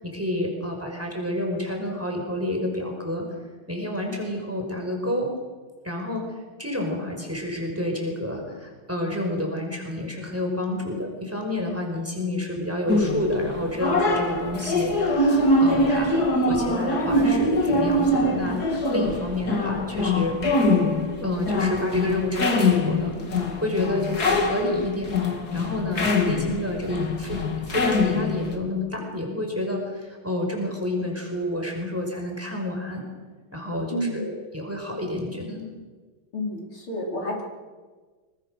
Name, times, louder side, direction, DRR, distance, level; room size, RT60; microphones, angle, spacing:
voice 1, 0.0-3.3 3.7-5.3 5.8-20.4 21.2-23.2 23.6-25.1 25.5-33.0 33.5-35.7, left 1 dB, 5° right, 1 dB, 5.4 m, -29 dB
sound 1, 12.9-28.6, left 2 dB, 45° left, 3.1 m, -23 dB
voice 2, 33.9-34.3 36.3-37.4, equal, 80° left, -1 dB, 5.7 m, -30 dB
26.5 x 23.5 x 6.6 m, 1.4 s
omnidirectional pair, 2.3 m